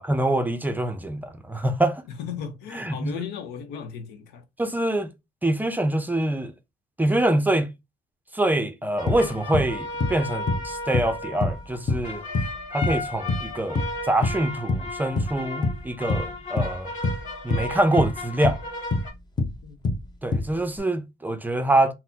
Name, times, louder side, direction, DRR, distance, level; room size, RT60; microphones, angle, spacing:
voice 1, 0.0-2.0 2.8-3.1 4.6-5.1 5.4-6.5 7.0-7.7 8.3-12.2 12.7-16.9 17.4-18.6 20.2-21.9, right 1 dB, 10° right, 0.5 m, -25 dB
voice 2, 2.1-4.4 19.6-19.8, left 7 dB, 85° left, 0.7 m, -36 dB
sound 1, 9.0-19.1, left 2 dB, 50° left, 1.8 m, -35 dB
sound 2, 9.1-9.8 10.0-10.2 10.5-11.1 11.4-12.6 12.8-13.5 13.8-14.4 14.7-14.9 15.2-15.8 16.1-17.3 17.5-18.6 18.9-20.1 20.3-20.8, left 3 dB, 25° left, 0.7 m, -26 dB
4.0 x 2.1 x 2.7 m
cardioid pair, 110°, 17 cm